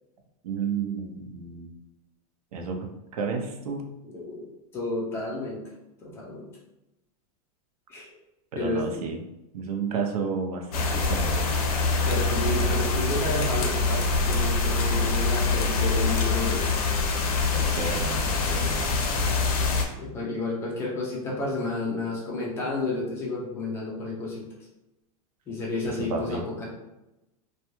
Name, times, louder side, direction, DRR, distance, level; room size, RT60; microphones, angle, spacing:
voice 1, 0.4-1.7 2.5-3.9 8.5-9.2 9.5-11.6 17.5-18.9 26.0-26.4, right 5 dB, 80° right, 3 dB, 0.6 m, -32 dB
voice 2, 4.0-5.6 6.0-6.5 7.9-8.1 8.6-9.0 12.0-16.6 20.0-24.5 25.5-26.7, left 2 dB, 15° left, -4 dB, 0.4 m, -31 dB
sound 1, 10.7-19.8, left 3 dB, 80° left, 0.6 m, -25 dB
2.4 x 2.2 x 2.9 m, 0.93 s
supercardioid pair, 170°, 19 cm